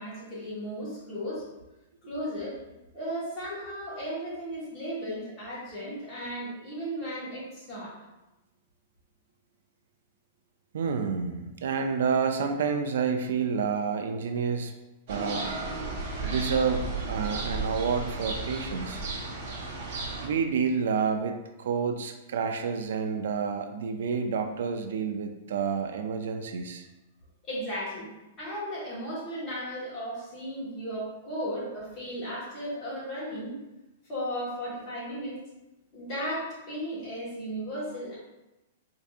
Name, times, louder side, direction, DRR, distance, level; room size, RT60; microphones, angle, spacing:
voice 1, 0.0-1.5 2.1-7.9 27.5-28.1 28.4-33.6 34.1-35.4 35.9-38.2, equal, 25° left, -8 dB, 1.3 m, -35 dB
voice 2, 10.7-14.7 15.1-15.5 16.2-19.0 20.2-26.9, right 6 dB, 75° right, 6 dB, 0.3 m, -29 dB
sound 1, 15.1-20.3, right 3 dB, 45° right, 1.1 m, -34 dB
4.5 x 2.6 x 2.4 m, 1.0 s
supercardioid pair, 170°, 0 cm